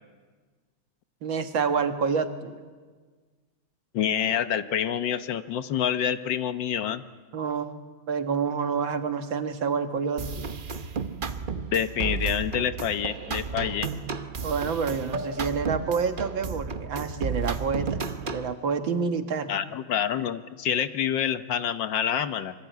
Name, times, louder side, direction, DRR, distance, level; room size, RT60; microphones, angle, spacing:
voice 1, 1.2-2.7 7.3-7.7 8.1-10.5 14.4-19.5, right 5 dB, 75° right, 7 dB, 2.3 m, -28 dB
voice 2, 3.9-7.0 11.7-13.9 19.5-22.5, left 9 dB, 70° left, 11 dB, 1.6 m, -27 dB
sound 1, 10.2-18.5, right 5 dB, 40° right, 0.7 m, -33 dB
25.5 x 24.0 x 9.4 m, 1.5 s
omnidirectional pair, 2.2 m